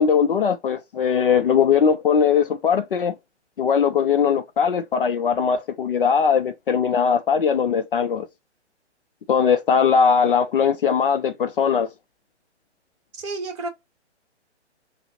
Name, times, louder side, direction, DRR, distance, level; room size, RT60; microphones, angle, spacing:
voice 1, 0.0-3.1 3.6-8.3 9.3-11.9, left 6 dB, 50° left, 0.4 m, -20 dB
voice 2, 13.1-13.7, right 3 dB, 25° right, 1.0 m, -30 dB
3.3 x 2.1 x 2.7 m
hypercardioid pair, 140°, 35 cm